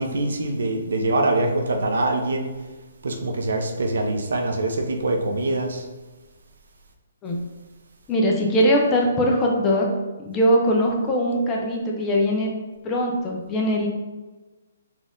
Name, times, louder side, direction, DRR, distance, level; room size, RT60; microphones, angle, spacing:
voice 1, 0.0-2.5 3.0-5.8, right 2 dB, 75° right, 4 dB, 0.6 m, -24 dB
voice 2, 8.1-9.9 10.2-12.5 12.8-13.9, equal, 10° left, -1 dB, 0.4 m, -21 dB
4.2 x 2.4 x 3.6 m, 1.2 s
hypercardioid pair, 175°, 0 cm